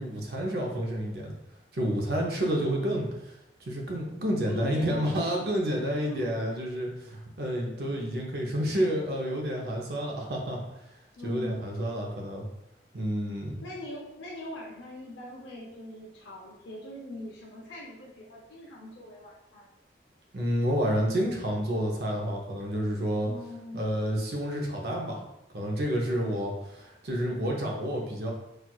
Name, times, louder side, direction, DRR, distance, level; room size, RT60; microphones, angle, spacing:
voice 1, 0.0-1.3 1.7-3.1 3.6-10.6 11.2-12.5 12.9-13.6 20.3-23.3 23.7-25.2 25.5-28.3, equal, 60° right, -1 dB, 0.6 m, -29 dB
voice 2, 2.5-3.0 4.4-6.7 7.6-8.1 11.2-11.6 13.6-19.7 23.3-23.8, left 1 dB, 85° left, -4 dB, 0.6 m, -42 dB
4.2 x 2.3 x 2.3 m, 0.87 s
head